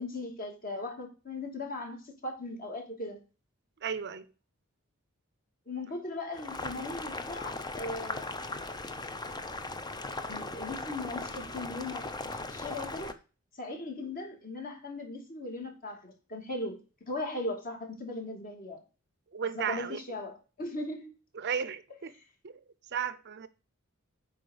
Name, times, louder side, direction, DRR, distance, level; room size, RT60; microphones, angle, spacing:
voice 1, 0.0-3.2 5.7-8.3 10.3-13.2 13.6-18.8 19.5-21.1, left 2 dB, 40° left, 2.6 m, -38 dB
voice 2, 3.8-4.3 19.3-20.0 21.3-22.1 22.4-22.6 22.9-23.5, right 7 dB, 55° right, 0.6 m, -34 dB
Boiling, 6.3-13.1, left 2 dB, 20° left, 0.7 m, -38 dB
8.4 x 5.0 x 6.6 m
head